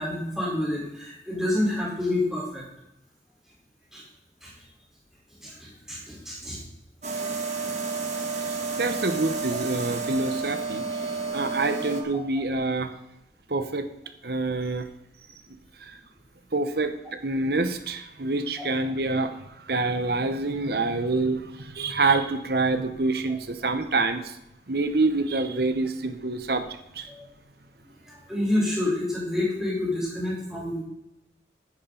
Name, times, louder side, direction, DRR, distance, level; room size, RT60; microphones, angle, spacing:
voice 1, 0.0-2.6 3.9-4.0 4.4-4.5 5.4-6.6 27.1-27.2 28.0-30.8, left 1 dB, 5° right, -7 dB, 4.0 m, -28 dB
sound 1, 7.0-12.0, right 4 dB, 40° right, 1.4 m, -30 dB
voice 2, 8.5-12.9 13.5-13.9 14.2-14.9 15.8-16.0 16.5-16.9 17.2-24.4 24.7-27.1, right 3 dB, 60° right, 9 dB, 1.0 m, -27 dB
10.0 x 10.0 x 3.9 m, 0.87 s
head